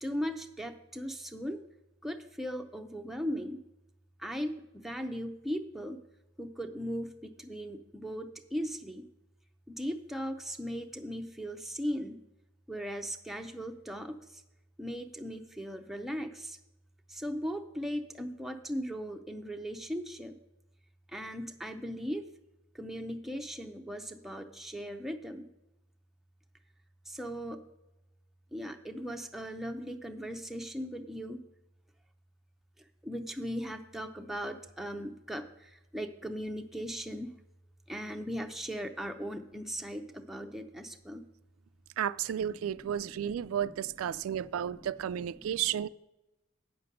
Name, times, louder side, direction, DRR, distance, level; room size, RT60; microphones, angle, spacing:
voice 1, 0.0-1.6 2.0-3.6 4.2-6.0 6.4-9.1 9.7-12.2 12.7-14.4 14.8-16.6 17.1-20.4 21.1-22.3 22.7-25.5 27.1-27.6 28.5-31.4 33.0-37.3 37.9-41.3 42.6-45.8, equal, ahead, 0.5 m, -38 dB
voice 2, 42.0-45.9, right 9 dB, 85° right, 0.3 m, -33 dB
9.0 x 6.8 x 6.5 m
head